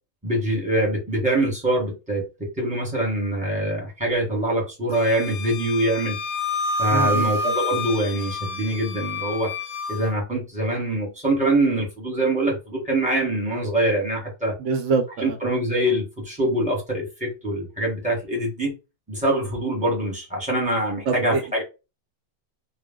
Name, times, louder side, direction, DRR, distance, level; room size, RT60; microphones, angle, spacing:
voice 1, 0.2-6.2 6.8-9.5 9.9-14.6 15.2-18.7 19.1-21.6, right 1 dB, 5° right, 1.0 m, -24 dB
Wind instrument woodwind instrument, 4.9-10.1, left 2 dB, 65° left, 0.8 m, -28 dB
voice 2, 6.9-7.3 14.6-15.4 21.1-21.4, right 4 dB, 65° right, 0.9 m, -24 dB
2.4 x 2.2 x 3.6 m
omnidirectional pair, 1.6 m